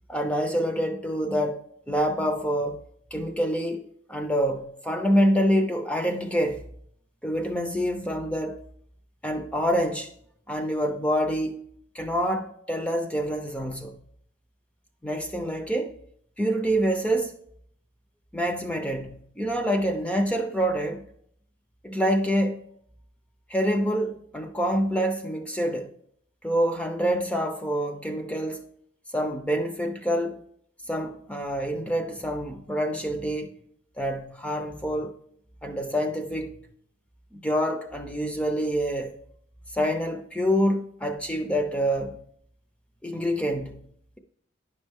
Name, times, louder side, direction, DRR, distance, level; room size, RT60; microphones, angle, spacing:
voice 1, 0.1-1.6 1.9-2.8 3.1-6.6 7.2-8.6 9.2-10.1 10.5-11.6 11.9-14.0 15.0-16.0 16.4-17.3 18.3-21.1 21.8-22.6 23.5-25.9 26.4-28.7 29.1-30.4 30.9-33.6 34.0-35.1 35.6-36.5 37.3-39.1 39.7-42.2 43.0-43.8, equal, 5° left, 0.5 m, -26 dB
9.9 x 5.3 x 3.6 m
head